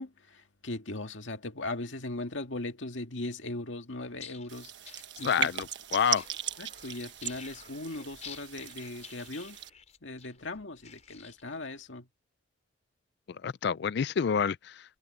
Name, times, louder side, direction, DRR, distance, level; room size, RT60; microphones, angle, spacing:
voice 1, 0.0-4.7 5.2-5.5 6.6-9.6 10.0-12.1, left 2 dB, 80° left, 2.0 m, -39 dB
sound 1, 4.1-11.7, left 7 dB, 35° left, 5.6 m, -50 dB
sound 2, 4.5-9.7, right 10 dB, 65° right, 1.3 m, -38 dB
voice 2, 5.2-5.7 5.9-6.2 13.4-15.0, left 7 dB, 60° left, 0.4 m, -28 dB
head